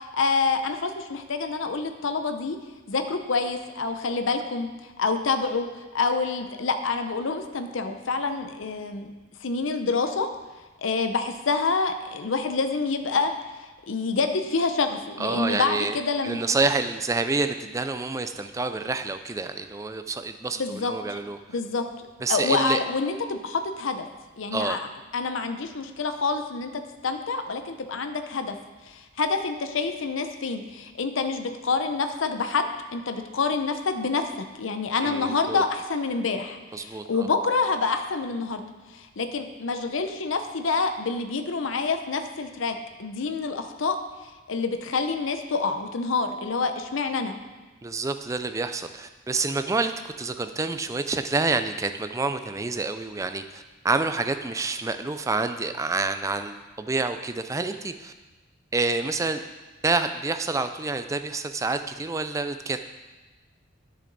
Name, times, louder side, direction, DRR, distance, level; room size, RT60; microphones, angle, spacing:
voice 1, 0.0-2.6 2.9-4.7 5.0-5.7 5.9-9.1 9.4-10.3 10.8-13.3 13.9-16.4 20.5-21.2 21.5-21.9 22.3-24.1 24.4-24.9 25.1-28.6 28.8-34.3 34.6-38.6 38.9-44.0 44.5-47.3, left 4 dB, 75° left, 8 dB, 0.6 m, -27 dB
voice 2, 15.2-16.0 16.2-21.4 22.2-22.8 24.5-24.8 35.0-35.6 36.7-37.3 47.8-58.1 58.7-59.4 59.8-62.8, right 3 dB, 15° right, 9 dB, 0.3 m, -28 dB
10.5 x 6.8 x 4.0 m, 1.2 s
head